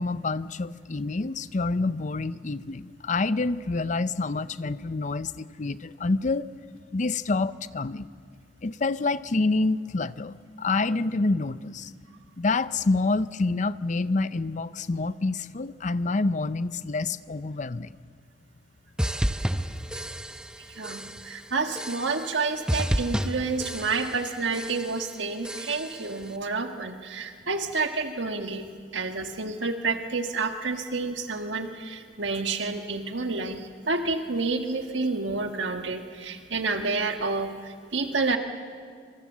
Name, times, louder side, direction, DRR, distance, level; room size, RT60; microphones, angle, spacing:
voice 1, 0.0-6.5 6.9-8.1 8.6-11.9 12.4-18.0, left 3 dB, 40° left, 15 dB, 0.6 m, -27 dB
sound 1, 19.0-20.6 20.8-21.3 21.8-22.4 22.7-24.3 24.5-25.0 25.4-26.1, equal, 5° right, 0.7 m, -31 dB
voice 2, 20.7-28.7 28.9-38.4, right 3 dB, 85° right, 6 dB, 1.5 m, -29 dB
26.0 x 24.5 x 7.4 m, 2.1 s
head